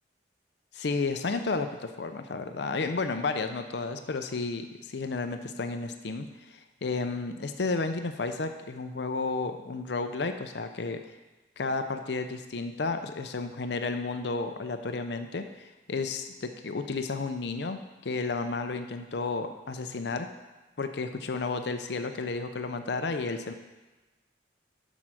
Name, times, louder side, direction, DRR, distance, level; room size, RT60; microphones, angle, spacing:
voice 1, 0.7-11.0 11.6-20.3 20.8-23.5, left 3 dB, 65° left, 7 dB, 0.5 m, -32 dB
7.7 x 6.2 x 6.2 m, 1.1 s
head